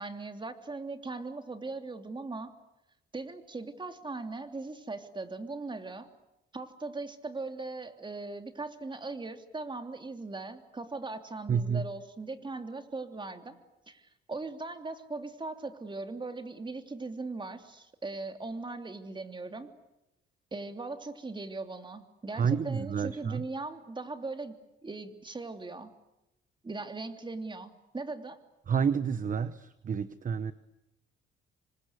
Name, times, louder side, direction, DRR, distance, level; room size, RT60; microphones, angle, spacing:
voice 1, 0.0-2.5 3.1-6.1 6.5-13.6 13.9-19.7 20.5-24.5 24.8-25.9 26.6-28.4, right 3 dB, 25° right, 7 dB, 3.1 m, -39 dB
voice 2, 11.5-11.8 22.3-23.4 28.7-30.5, right 6 dB, 40° right, 13 dB, 1.1 m, -29 dB
27.5 x 25.0 x 8.2 m, 0.90 s
cardioid pair, 90°, 20 cm